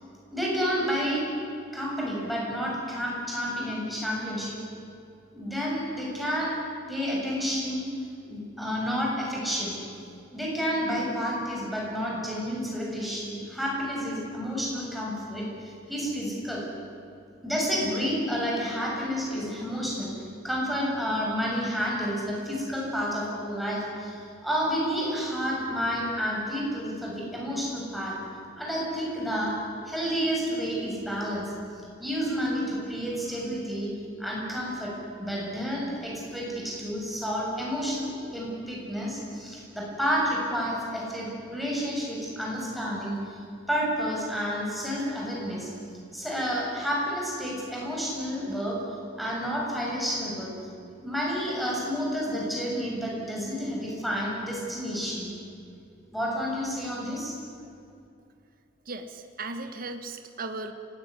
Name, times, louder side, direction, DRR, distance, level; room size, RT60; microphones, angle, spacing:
voice 1, 0.3-1.2 1.7-4.6 5.3-6.5 6.9-7.8 8.2-9.8 10.3-16.6 17.4-28.2 28.6-29.6 29.9-31.5 32.0-33.9 34.2-34.9 35.2-43.4 43.7-45.7 46.1-48.8 49.1-50.5 51.0-55.3 56.1-57.3, equal, ahead, -4 dB, 7.0 m, -30 dB
voice 2, 58.9-60.7, right 3 dB, 50° right, 6 dB, 1.5 m, -36 dB
25.0 x 18.5 x 9.7 m, 2.6 s
head